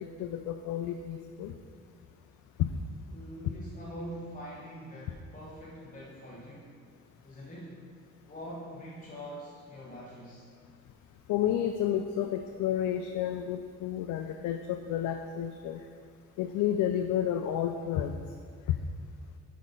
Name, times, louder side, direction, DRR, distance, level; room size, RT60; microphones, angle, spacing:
voice 1, 0.0-1.5 2.6-2.7 11.3-15.9 16.4-18.2 18.7-18.8, left 10 dB, 80° left, 6 dB, 0.5 m, -31 dB
voice 2, 3.1-6.8 7.2-7.9 8.2-10.5, equal, 25° left, -6 dB, 1.3 m, -44 dB
6.3 x 5.1 x 5.5 m, 2.2 s
cardioid pair, 90°, 30 cm